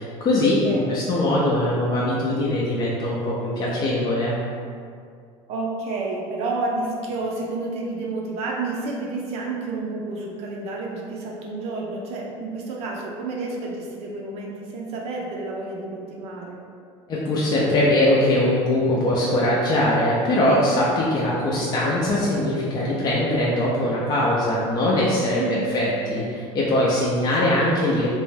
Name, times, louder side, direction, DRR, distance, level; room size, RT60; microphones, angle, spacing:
voice 1, 0.0-4.3 17.1-28.1, left 1 dB, 35° left, -6 dB, 0.4 m, -21 dB
voice 2, 0.6-1.0 5.5-16.6 25.4-25.7, right 3 dB, 55° right, -2 dB, 0.5 m, -30 dB
2.5 x 2.2 x 3.2 m, 2.3 s
cardioid pair, 130°, 12 cm